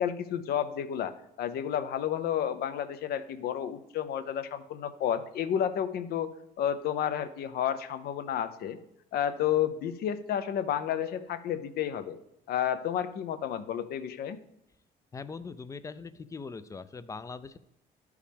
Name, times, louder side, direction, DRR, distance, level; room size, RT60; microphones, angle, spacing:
voice 1, 0.0-6.3 6.6-8.8 9.1-12.2 12.5-14.4, left 9 dB, 65° left, 11 dB, 0.6 m, -31 dB
voice 2, 15.1-17.6, left 4 dB, 20° left, 15 dB, 0.4 m, -41 dB
11.5 x 4.8 x 3.5 m, 0.82 s
cardioid pair, 110°, 17 cm